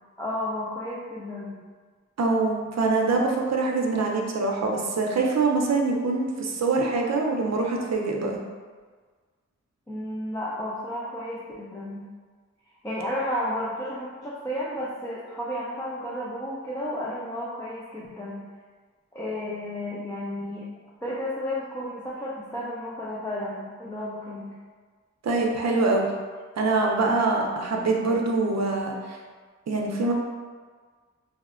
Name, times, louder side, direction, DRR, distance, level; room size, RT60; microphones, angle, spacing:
voice 1, 0.2-1.6 9.9-12.1 12.8-18.5 19.1-20.7 21.0-24.5, left 1 dB, 10° left, -7 dB, 0.4 m, -32 dB
voice 2, 2.2-8.4 25.2-26.1 26.6-29.2 29.7-30.1, right 3 dB, 65° right, 0 dB, 0.5 m, -24 dB
4.8 x 2.1 x 2.4 m, 1.5 s
wide cardioid pair, 110°, 29 cm